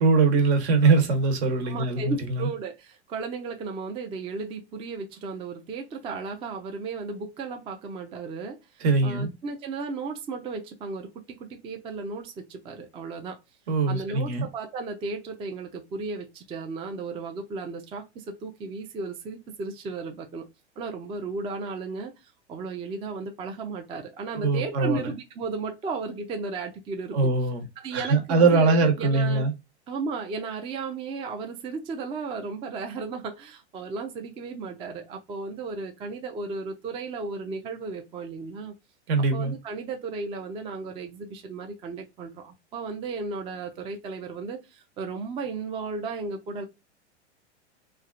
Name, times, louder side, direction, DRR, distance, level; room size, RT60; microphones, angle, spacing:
voice 1, 0.0-2.5 8.8-9.3 13.7-14.4 24.4-25.0 27.1-27.6 27.9-29.5 39.1-39.5, right 3 dB, 65° right, 1.1 m, -22 dB
voice 2, 1.6-11.1 11.4-13.4 13.9-20.5 20.8-22.1 22.5-27.3 27.8-29.5 29.9-38.7 39.3-46.6, right 4 dB, 15° right, 0.4 m, -34 dB
3.1 x 2.3 x 2.5 m
hypercardioid pair, 115°, 34 cm